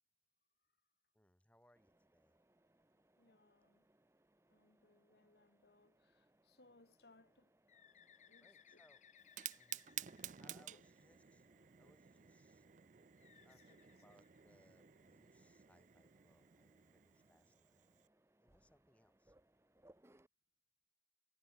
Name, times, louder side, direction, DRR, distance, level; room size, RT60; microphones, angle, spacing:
voice 1, 1.1-2.3 8.4-9.0 9.6-9.9 10.4-11.5 11.8-12.6 13.4-17.8 18.4-19.3, left 1 dB, 10° left, 1.3 m, -72 dB
Mechanisms, 1.7-20.3, right 1 dB, 15° right, 0.8 m, -74 dB
voice 2, 3.2-3.9 4.5-7.5 8.3-8.8 9.5-10.1 10.5-10.8 12.5-12.6 13.7-13.8, left 2 dB, 70° left, 1.8 m, -70 dB
Bird, 7.7-11.4 13.2-15.0, left 8 dB, 40° left, 1.7 m, -67 dB
Fire, 9.2-18.1, right 12 dB, 45° right, 0.5 m, -53 dB
head